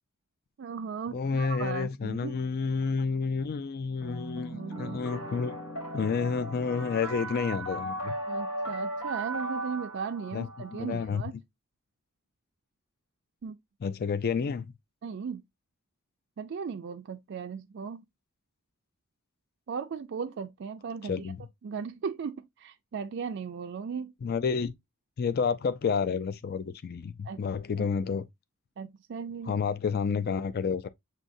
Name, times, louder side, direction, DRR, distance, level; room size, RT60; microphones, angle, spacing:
voice 1, 0.6-2.4 4.5-5.0 8.3-11.3 13.4-13.6 15.0-15.4 16.4-18.0 19.7-21.3 21.6-24.1 27.2-27.4 27.8-27.9 28.8-29.5, right 6 dB, 55° right, 0.4 m, -37 dB
voice 2, 1.1-5.6 5.9-8.1 10.3-11.2 13.8-14.7 21.0-21.4 24.2-24.7 25.2-28.2 29.5-30.9, left 5 dB, 45° left, 0.4 m, -30 dB
sound 1, 4.0-11.0, right 1 dB, 90° left, 2.3 m, -37 dB
7.3 x 2.7 x 2.6 m
head